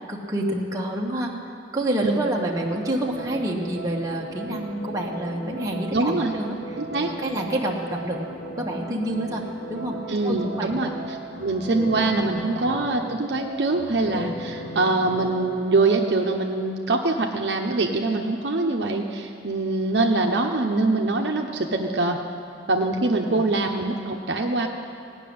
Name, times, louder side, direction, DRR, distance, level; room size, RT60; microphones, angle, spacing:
voice 1, 0.1-1.3 1.7-6.8 7.2-8.2 8.4-9.4 9.7-9.9 10.2-10.9 12.0-12.5 23.3-23.4, right 1 dB, 20° right, -2 dB, 1.1 m, -28 dB
sound 1, 2.5-16.0, right 1 dB, 70° left, 2.7 m, -37 dB
voice 2, 5.9-6.3 6.8-7.1 10.1-10.9 11.4-22.2 22.7-24.7, right 2 dB, 70° right, 1 dB, 0.8 m, -23 dB
17.0 x 6.2 x 9.4 m, 2.5 s
head